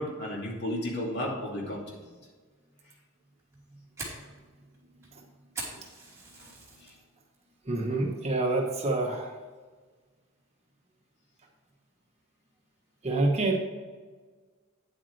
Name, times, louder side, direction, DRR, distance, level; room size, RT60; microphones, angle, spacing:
voice 1, 0.0-2.0 6.4-6.5 6.8-6.9, left 1 dB, 50° left, -2 dB, 2.6 m, -33 dB
Fire, 3.4-6.9 7.3-7.7 8.1-8.2 8.8-9.1, right 3 dB, 15° right, 2.6 m, -42 dB
voice 2, 7.6-9.4 13.0-13.6, right 2 dB, 30° right, 0 dB, 1.2 m, -27 dB
9.4 x 8.4 x 3.3 m, 1.4 s
head